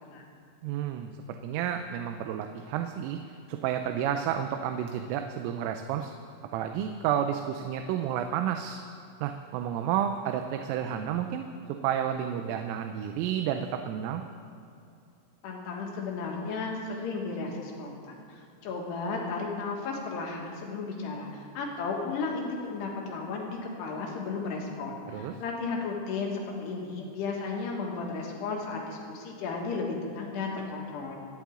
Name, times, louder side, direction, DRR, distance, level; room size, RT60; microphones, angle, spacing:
voice 1, 0.6-1.1 1.4-3.2 3.5-6.1 6.5-8.8 9.2-11.5 11.8-14.2 25.1-25.4, right 9 dB, 85° right, 6 dB, 3.3 m, -31 dB
voice 2, 15.4-31.2, left 4 dB, 65° left, -1 dB, 3.7 m, -34 dB
28.5 x 10.5 x 3.8 m, 2.5 s
omnidirectional pair, 5.7 m